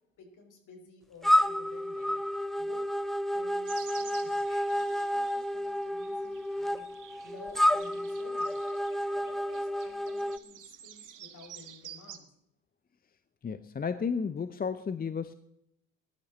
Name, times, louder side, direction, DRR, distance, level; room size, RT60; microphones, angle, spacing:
voice 1, 0.2-2.1 2.6-2.8 3.3-4.4 4.7-6.8 7.2-8.5 9.1-12.3, left 3 dB, 50° left, 3 dB, 5.5 m, -53 dB
sound 1, 1.2-10.4, equal, ahead, 0.5 m, -30 dB
sound 2, 3.6-12.2, right 10 dB, 50° right, 1.8 m, -50 dB
voice 2, 13.4-15.3, left 6 dB, 25° left, 12 dB, 0.8 m, -33 dB
19.5 x 12.0 x 4.2 m, 0.80 s
hypercardioid pair, 70°, 39 cm